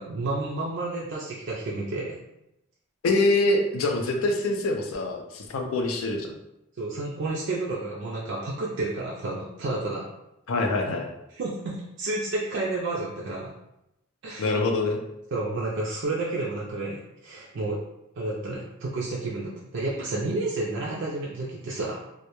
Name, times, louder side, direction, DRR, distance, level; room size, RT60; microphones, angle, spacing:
voice 1, 0.0-2.2 6.8-10.0 11.3-13.5 14.2-14.6 15.3-17.8 18.2-22.0, right 2 dB, 60° right, -5 dB, 0.4 m, -30 dB
voice 2, 3.0-6.3 10.5-11.1 14.4-15.0, left 2 dB, 80° left, 3 dB, 0.4 m, -25 dB
2.1 x 2.1 x 2.9 m, 0.86 s
head